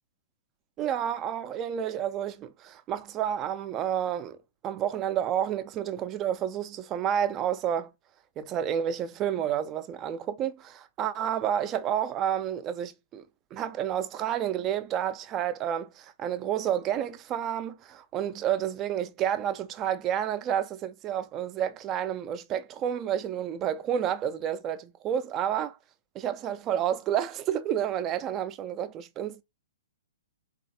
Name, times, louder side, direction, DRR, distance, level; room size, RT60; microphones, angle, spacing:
voice 1, 0.8-4.4 4.6-7.9 8.4-13.2 13.5-25.8 26.1-29.4, right 10 dB, 30° right, 0.4 m, -30 dB
3.1 x 2.4 x 2.7 m
hypercardioid pair, 125°, 0 cm